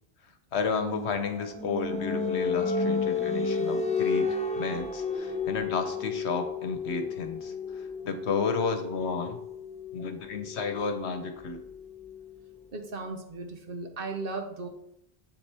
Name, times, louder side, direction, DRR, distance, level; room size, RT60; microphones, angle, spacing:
voice 1, 0.5-9.4 9.9-11.6, left 5 dB, 85° left, 7 dB, 1.2 m, -32 dB
sound 1, 0.8-12.3, left 4 dB, 10° left, 0.6 m, -32 dB
voice 2, 10.0-10.3 12.7-14.7, right 3 dB, 60° right, 5 dB, 1.1 m, -37 dB
7.8 x 7.2 x 3.4 m, 0.78 s
omnidirectional pair, 1.1 m